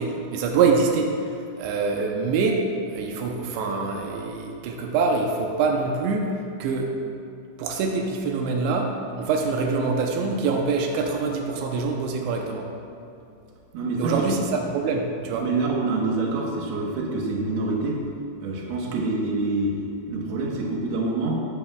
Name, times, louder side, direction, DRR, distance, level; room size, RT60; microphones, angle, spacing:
voice 1, 0.0-6.3 6.6-6.9 7.6-12.6 14.0-15.5, right 4 dB, 90° right, 1 dB, 3.1 m, -25 dB
voice 2, 13.7-14.4 15.3-18.0 18.4-19.8 20.1-21.4, right 3 dB, 70° right, -2 dB, 3.1 m, -26 dB
14.5 x 9.7 x 2.4 m, 2.6 s
omnidirectional pair, 4.9 m